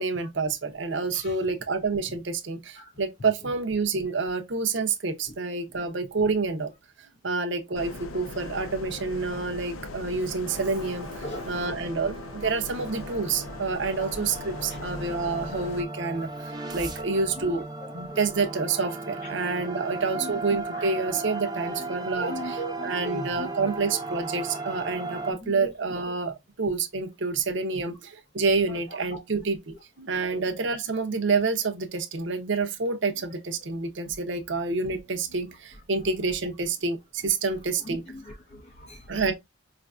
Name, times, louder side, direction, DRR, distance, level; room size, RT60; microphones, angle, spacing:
voice 1, 0.0-6.7 7.0-17.6 17.9-38.0 39.1-39.3, right 4 dB, 60° right, 0.7 m, -28 dB
sound 1, 7.8-15.8, left 2 dB, 80° left, 0.5 m, -39 dB
sound 2, 10.4-25.3, right 3 dB, 20° right, 0.6 m, -36 dB
voice 2, 17.4-18.2 20.2-20.3 20.7-20.9 21.2-21.3 21.8-21.9 22.2-23.5 25.4-25.7 28.7-28.8 29.1-29.2 30.3-30.4 37.8-39.1, equal, 35° left, 0.5 m, -39 dB
5.0 x 2.5 x 2.2 m
head